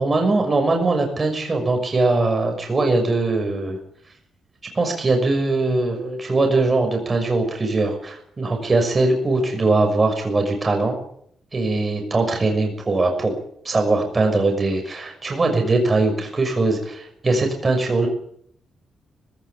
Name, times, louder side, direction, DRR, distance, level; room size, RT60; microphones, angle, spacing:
voice 1, 0.0-3.8 4.7-11.0 11.5-13.3 13.6-18.1, right 2 dB, 30° right, 4 dB, 6.1 m, -21 dB
19.0 x 17.0 x 9.4 m, 0.69 s
cardioid pair, 105°, 0 cm